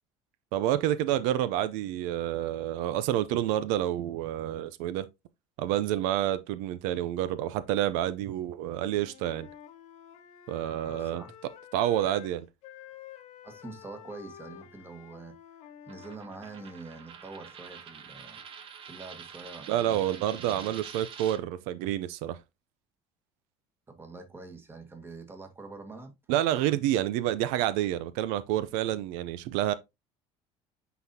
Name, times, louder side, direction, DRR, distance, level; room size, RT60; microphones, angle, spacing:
voice 1, 0.5-5.1 5.6-9.5 10.5-11.2 11.7-12.4 19.7-22.4 26.3-29.7, right 12 dB, 90° right, 0.5 m, -28 dB
Wind instrument woodwind instrument, 8.8-12.3 12.6-16.8, left 10 dB, 65° left, 1.0 m, -50 dB
voice 2, 10.9-11.3 13.4-15.3 15.9-18.4 18.8-20.7 23.9-26.1, right 3 dB, 20° right, 1.4 m, -45 dB
Coin (dropping), 15.9-21.4, right 7 dB, 45° right, 1.0 m, -46 dB
9.2 x 4.0 x 2.7 m
cardioid pair, 130°, 12 cm